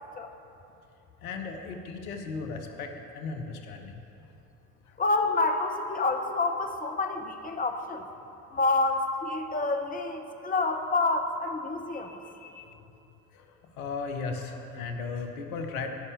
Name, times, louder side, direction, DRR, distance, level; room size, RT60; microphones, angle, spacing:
voice 1, 1.2-4.0 4.9-5.0 13.3-15.9, left 4 dB, 75° left, 4 dB, 0.9 m, -36 dB
voice 2, 5.0-8.0 8.5-12.7, left 3 dB, 20° left, 5 dB, 1.0 m, -28 dB
10.5 x 5.5 x 8.3 m, 2.8 s
figure-of-eight pair, 55°, 43 cm